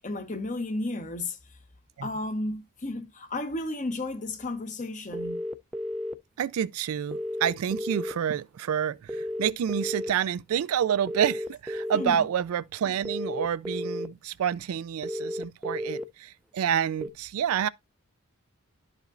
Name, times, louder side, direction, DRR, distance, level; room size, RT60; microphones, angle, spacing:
voice 1, 0.0-1.4 2.0-5.4 11.9-12.2, left 2 dB, 35° left, 0.8 m, -33 dB
sound 1, 5.1-6.1 7.1-8.1 9.1-10.1 11.1-12.1 13.1-14.1 15.0-16.0 17.0-17.1, left 1 dB, 5° right, 0.4 m, -33 dB
voice 2, 6.4-17.7, right 8 dB, 80° right, 0.3 m, -28 dB
11.5 x 5.0 x 2.5 m
head